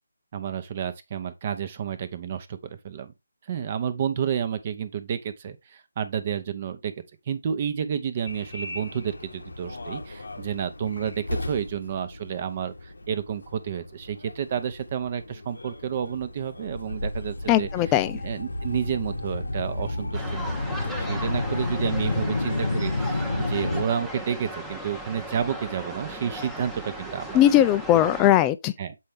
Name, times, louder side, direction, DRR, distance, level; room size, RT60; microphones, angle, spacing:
voice 1, 0.3-3.1 3.5-6.9 7.3-20.5 20.8-27.4 28.8-29.0, right 8 dB, 35° right, 0.8 m, -30 dB
Subway metro underground, 8.3-23.8, left 2 dB, 75° left, 1.0 m, -32 dB
voice 2, 17.5-18.1 27.3-28.7, left 12 dB, 15° left, 0.4 m, -19 dB
sound 1, 20.1-28.3, right 1 dB, ahead, 0.9 m, -37 dB
7.5 x 4.4 x 3.4 m
figure-of-eight pair, 155°, 0 cm